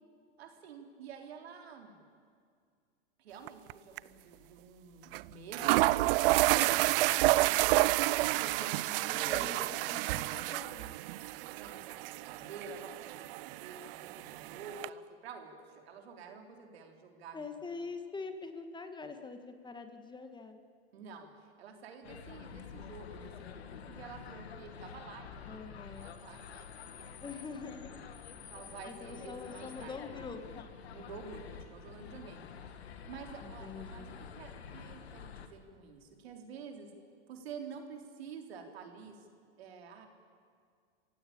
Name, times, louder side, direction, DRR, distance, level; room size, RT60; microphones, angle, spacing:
voice 1, 0.4-2.1 3.2-9.8 11.1-17.4 20.9-27.5 28.3-30.0 30.9-36.9 37.3-39.3 39.6-40.1, right 5 dB, 75° right, 4 dB, 3.8 m, -49 dB
sound 1, 3.5-3.7 4.0-4.1 5.1-5.2 5.5-14.9, right 19 dB, 60° right, 0.7 m, -30 dB
voice 2, 8.9-10.9 17.3-20.6 25.5-26.1 27.2-28.0 28.9-30.7 33.4-34.2, left 4 dB, 15° left, 7 dB, 2.0 m, -45 dB
sound 2, 22.0-35.5, left 7 dB, 85° left, 2.0 m, -48 dB
26.5 x 16.5 x 8.8 m, 2.1 s
hypercardioid pair, 105°, 31 cm